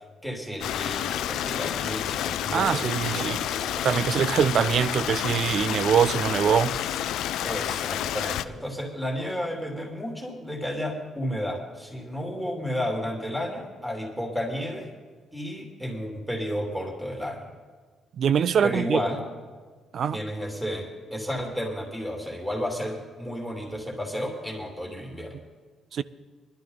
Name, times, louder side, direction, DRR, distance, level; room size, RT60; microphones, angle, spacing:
voice 1, 0.2-4.3 7.4-14.9 15.3-17.5 18.6-19.2 20.1-25.4, equal, ahead, 2.7 m, -32 dB
Stream, 0.6-8.5, left 11 dB, 85° left, 0.4 m, -29 dB
voice 2, 2.5-3.4 3.8-6.8 18.2-19.0 19.9-20.2 25.9-26.0, right 7 dB, 60° right, 0.4 m, -23 dB
19.5 x 12.0 x 4.0 m
cardioid pair, 90°, 0 cm